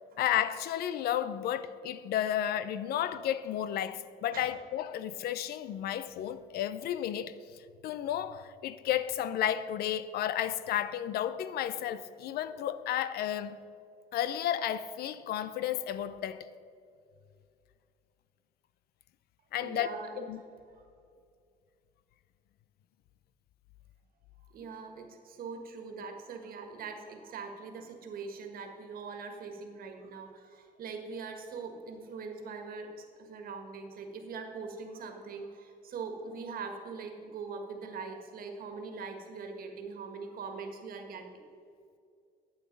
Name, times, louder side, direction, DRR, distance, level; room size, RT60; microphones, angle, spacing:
voice 1, 0.2-7.4 7.8-13.6 14.1-16.5 19.5-20.4, left 11 dB, 70° left, 0.5 m, -32 dB
voice 2, 19.6-20.3 20.7-20.9 24.4-41.4, right 4 dB, 60° right, 1.7 m, -42 dB
12.0 x 8.1 x 5.3 m
cardioid pair, 110°, 17 cm